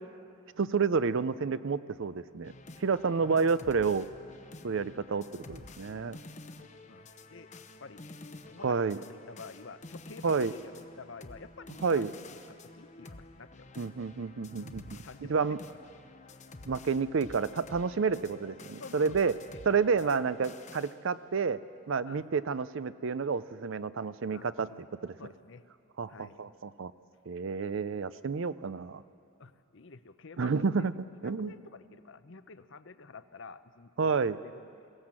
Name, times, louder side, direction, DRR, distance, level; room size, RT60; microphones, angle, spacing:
voice 1, 0.6-2.5 2.8-4.1 4.6-6.2 8.6-9.0 10.2-10.5 11.8-12.1 13.8-15.0 15.3-15.6 16.7-19.3 19.7-21.6 21.9-24.7 25.0-25.2 26.0-26.9 27.3-29.0 30.4-30.9 31.2-31.5 34.0-34.4, right 5 dB, 60° right, 15 dB, 0.5 m, -29 dB
sound 1, 2.4-21.0, left 2 dB, 30° left, 0.8 m, -50 dB
voice 2, 3.1-3.5 4.7-4.9 5.8-6.1 6.9-7.5 7.8-8.2 8.5-13.7 14.9-15.8 18.8-19.6 20.0-20.2 22.0-22.3 24.3-24.8 25.2-25.7 26.1-26.5 29.4-30.7 31.2-34.9, left 4 dB, 60° left, 12 dB, 0.7 m, -50 dB
21.5 x 17.5 x 7.5 m, 2.4 s
head